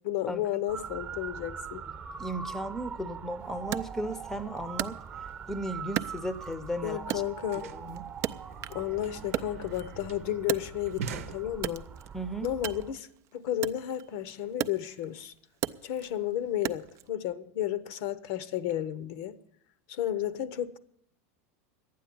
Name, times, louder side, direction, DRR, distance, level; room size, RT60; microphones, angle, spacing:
voice 1, 0.0-1.9 6.8-7.7 8.7-11.9 12.4-15.3 15.8-19.4 19.9-20.8, left 12 dB, 60° left, 0.8 m, -32 dB
Motor vehicle (road) / Siren, 0.7-12.9, right 7 dB, 25° right, 0.9 m, -42 dB
voice 2, 2.2-5.0 5.5-7.2 7.6-8.0 12.1-12.5, right 1 dB, 5° left, 0.7 m, -35 dB
Wood, 3.7-5.5 5.9-6.7 7.1-8.9 9.2-11.1 11.5-17.1, right 13 dB, 40° right, 0.4 m, -37 dB
sound 1, 6.6-6.7 6.9-12.1, right 6 dB, 85° right, 0.9 m, -44 dB
12.0 x 9.3 x 8.5 m
supercardioid pair, 135°, 7 cm